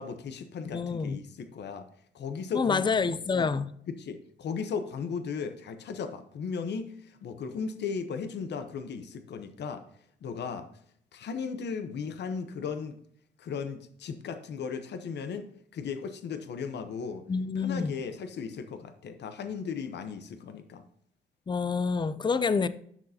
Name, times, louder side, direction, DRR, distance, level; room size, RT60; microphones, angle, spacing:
voice 1, 0.0-1.8 2.1-2.8 3.3-3.6 3.9-9.8 10.2-10.7 11.1-13.0 13.4-17.2 17.6-20.8, left 6 dB, 60° left, 0.9 m, -36 dB
voice 2, 0.7-1.2 2.5-3.7 17.3-17.9 21.5-22.7, left 5 dB, 25° left, 0.5 m, -27 dB
10.5 x 6.6 x 2.8 m
cardioid pair, 90°, 20 cm